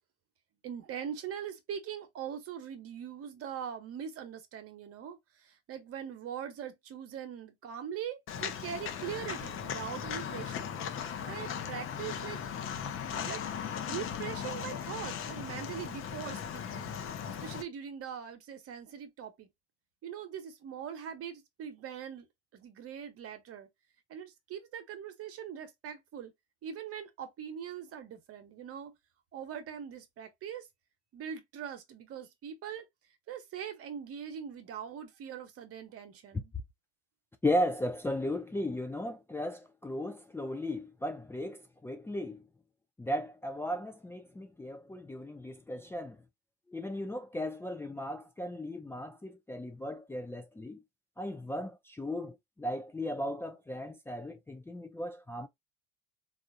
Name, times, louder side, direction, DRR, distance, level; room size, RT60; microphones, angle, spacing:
voice 1, 0.6-10.7 11.0-12.4 13.1-16.9 17.4-19.5 20.0-22.3 22.5-23.7 24.1-26.3 26.6-28.9 29.3-30.7 31.1-32.8 33.3-36.5, right 8 dB, 45° right, 0.9 m, -42 dB
Walk footsteps, 8.3-17.6, left 8 dB, 45° left, 0.8 m, -38 dB
voice 2, 37.4-42.4 43.0-46.2 46.7-50.8 51.2-55.5, left 1 dB, 10° left, 0.4 m, -36 dB
3.5 x 2.4 x 2.6 m
hypercardioid pair, 70°, 31 cm